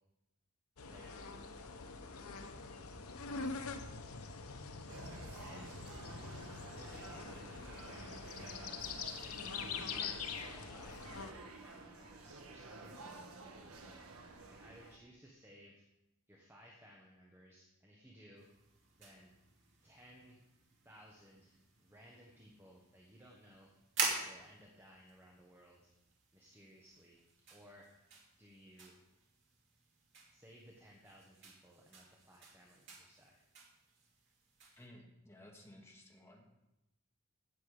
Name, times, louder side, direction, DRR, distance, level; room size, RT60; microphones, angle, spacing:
sound 1, 0.8-11.3, left 5 dB, 90° left, 0.9 m, -44 dB
voice 1, 0.8-1.4 5.3-5.8 6.7-15.8 16.3-18.5 18.9-19.3 19.8-20.4 20.8-21.5 21.8-23.7 24.2-25.9 26.3-27.2 27.5-27.9 28.4-29.0 30.3-33.4, equal, 10° right, -2 dB, 1.3 m, -60 dB
sound 2, 4.9-15.0, right 3 dB, 85° right, 1.5 m, -52 dB
sound 3, 18.4-34.9, right 4 dB, 55° right, 2.6 m, -47 dB
voice 2, 34.8-36.4, left 1 dB, 10° left, 0 dB, 1.8 m, -57 dB
16.0 x 6.8 x 5.1 m, 0.93 s
head